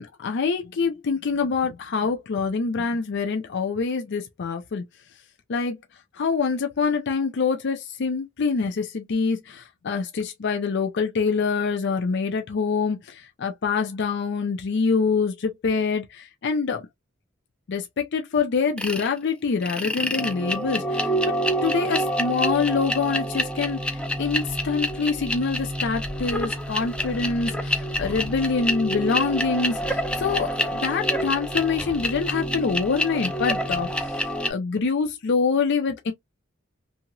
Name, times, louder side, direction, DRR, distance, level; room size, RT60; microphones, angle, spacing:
voice 1, 0.0-4.8 5.5-5.8 6.1-16.9 17.7-21.4 21.6-34.2 34.5-36.1, left 5 dB, 60° left, 0.5 m, -25 dB
sound 1, 18.8-19.1 19.6-34.5, equal, 5° left, 0.4 m, -27 dB
2.9 x 2.7 x 2.2 m
head